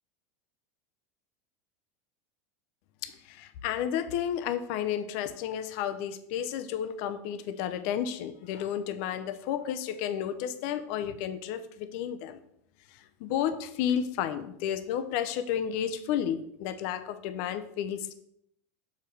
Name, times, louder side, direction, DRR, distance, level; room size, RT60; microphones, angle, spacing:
voice 1, 3.0-12.4 12.9-18.1, left 9 dB, 60° left, 10 dB, 0.7 m, -32 dB
6.8 x 4.9 x 4.5 m, 0.74 s
supercardioid pair, 140°, 8 cm